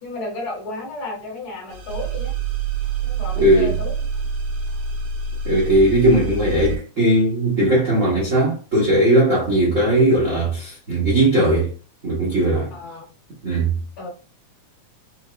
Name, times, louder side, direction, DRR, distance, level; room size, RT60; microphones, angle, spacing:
voice 1, 0.0-2.3 3.0-4.3 9.5-9.7 12.7-13.1 14.0-14.1, left 2 dB, 55° left, 1.7 m, -33 dB
sound 1, 1.7-6.8, right 5 dB, 90° right, 2.1 m, -26 dB
voice 2, 3.4-3.7 5.4-11.7 12.0-12.7 13.4-13.7, right 1 dB, 60° right, 0.8 m, -18 dB
5.5 x 2.0 x 2.4 m
omnidirectional pair, 3.4 m